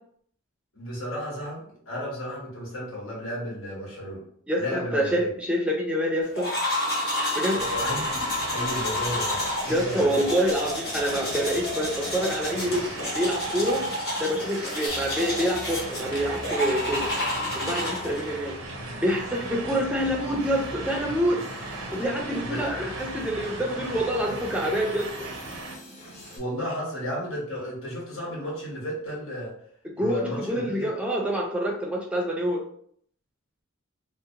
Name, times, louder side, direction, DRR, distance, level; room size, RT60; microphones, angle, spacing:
voice 1, 0.7-4.2 4.6-5.3 7.5-10.3 22.4-22.7 26.3-29.5 30.0-30.9, equal, 90° left, -4 dB, 1.2 m, -33 dB
voice 2, 4.5-6.5 7.3-7.6 9.7-13.8 14.2-17.1 17.5-18.5 19.0-21.4 21.9-25.1 29.8-32.6, equal, 5° right, -1 dB, 0.4 m, -26 dB
sound 1, 6.3-18.3, left 1 dB, 50° left, 0.9 m, -30 dB
sound 2, 7.6-25.7, right 2 dB, 75° right, 0.5 m, -38 dB
sound 3, 14.9-26.4, left 1 dB, 30° left, 0.6 m, -44 dB
2.7 x 2.1 x 2.7 m, 0.64 s
head